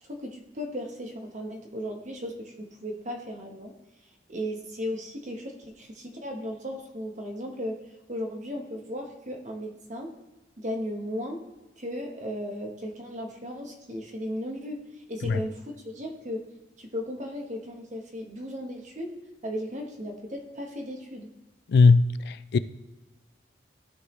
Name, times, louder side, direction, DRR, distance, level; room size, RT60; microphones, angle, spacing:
voice 1, 0.0-3.7 4.3-7.8 8.1-10.1 10.6-11.4 11.8-16.4 16.8-21.3, equal, 40° right, 1.2 m, -36 dB
voice 2, 21.7-22.6, left 4 dB, 55° left, 0.3 m, -19 dB
14.0 x 4.7 x 3.2 m
head